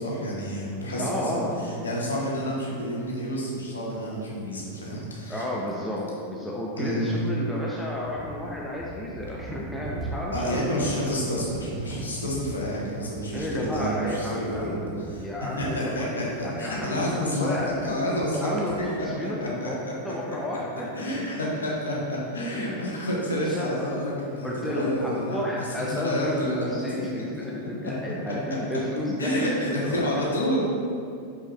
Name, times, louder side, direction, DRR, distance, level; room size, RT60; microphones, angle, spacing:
voice 1, 0.0-5.4 6.8-7.1 10.3-14.8 15.1-17.6 17.8-18.4 19.2-19.9 20.9-26.8 27.8-27.9 28.3-28.4 29.2-30.6, equal, 75° left, -5 dB, 1.6 m, -29 dB
voice 2, 1.0-1.6 5.3-10.9 13.3-14.9 15.2-16.3 16.6-21.1 22.5-23.7 24.4-30.1, left 1 dB, 5° left, -4 dB, 0.8 m, -32 dB
sound 1, 8.1-19.2, right 3 dB, 30° right, 1.0 m, -39 dB
6.8 x 6.1 x 3.2 m, 2.4 s
figure-of-eight pair, 90°, 0 cm